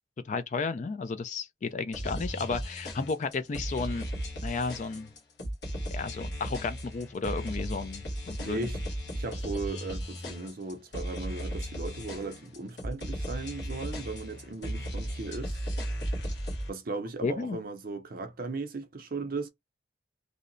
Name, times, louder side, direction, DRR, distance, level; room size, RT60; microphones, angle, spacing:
voice 1, 0.2-4.1 4.4-5.1 5.9-8.7 17.2-17.6, left 4 dB, 40° left, 0.3 m, -33 dB
sound 1, 1.9-16.7, equal, 60° left, 1.1 m, -36 dB
voice 2, 8.4-8.8 9.2-15.7 16.7-19.5, right 3 dB, 45° right, 0.5 m, -37 dB
2.7 x 2.0 x 2.5 m
head